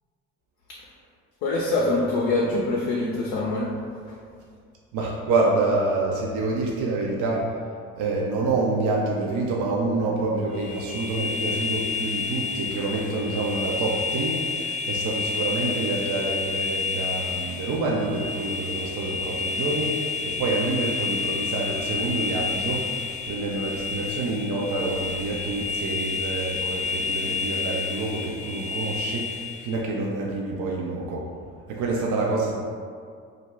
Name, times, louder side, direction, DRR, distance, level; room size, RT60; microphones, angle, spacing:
voice 1, 1.4-3.7, left 2 dB, 65° left, -3 dB, 0.6 m, -24 dB
voice 2, 4.9-7.5 7.9-31.3 31.7-32.5, right 3 dB, 50° right, -3 dB, 0.5 m, -27 dB
sound 1, 10.5-29.8, left 4 dB, 20° left, 0.5 m, -30 dB
2.4 x 2.1 x 3.1 m, 2.2 s
hypercardioid pair, 55°, 41 cm